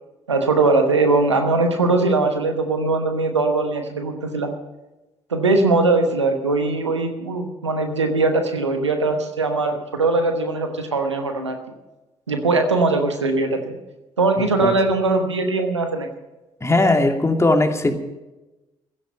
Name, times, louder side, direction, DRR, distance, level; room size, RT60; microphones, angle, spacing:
voice 1, 0.3-4.6 5.3-11.6 12.3-13.7 14.2-16.1, right 3 dB, 90° right, 6 dB, 1.1 m, -20 dB
voice 2, 16.6-17.9, left 2 dB, 20° left, 4 dB, 2.4 m, -18 dB
16.0 x 12.0 x 5.6 m, 1.0 s
figure-of-eight pair, 40°, 14 cm